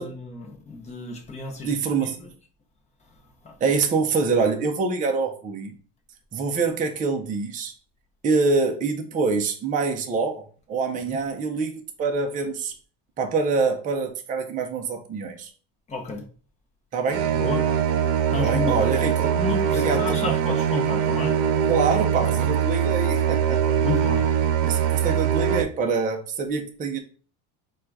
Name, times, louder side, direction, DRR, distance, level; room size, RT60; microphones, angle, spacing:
voice 1, 0.0-1.7 2.0-2.3 3.4-3.6 11.1-11.2 15.9-16.2 17.3-17.7 18.3-18.9 19.3-21.4 23.8-24.3, left 4 dB, 15° left, 0.7 m, -31 dB
voice 2, 1.6-2.2 3.6-5.7 6.3-7.7 8.2-11.7 12.0-12.7 13.2-15.5 16.9-17.3 18.4-19.4 19.7-20.2 21.7-23.6 24.6-27.0, right 4 dB, 20° right, 0.4 m, -25 dB
sound 1, 17.1-25.6, right 8 dB, 90° right, 0.7 m, -22 dB
3.7 x 2.4 x 4.5 m
cardioid pair, 150°, 42 cm